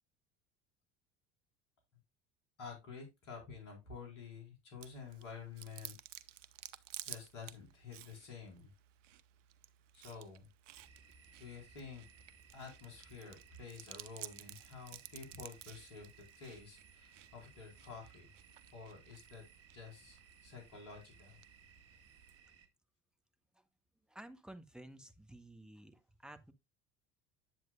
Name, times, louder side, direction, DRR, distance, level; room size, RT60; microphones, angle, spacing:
voice 1, 2.6-5.9 7.0-8.7 9.9-10.5 11.4-12.0 12.5-16.1 16.4-18.3 18.7-19.4 19.7-21.4, left 5 dB, 70° left, 4.6 m, -50 dB
Chewing mastication, 4.8-22.4, right 13 dB, 75° right, 0.7 m, -55 dB
sound 1, 10.7-22.7, right 6 dB, 40° right, 1.8 m, -62 dB
voice 2, 24.1-26.5, right 1 dB, ahead, 1.1 m, -53 dB
9.1 x 8.0 x 2.4 m
hypercardioid pair, 65°, 37 cm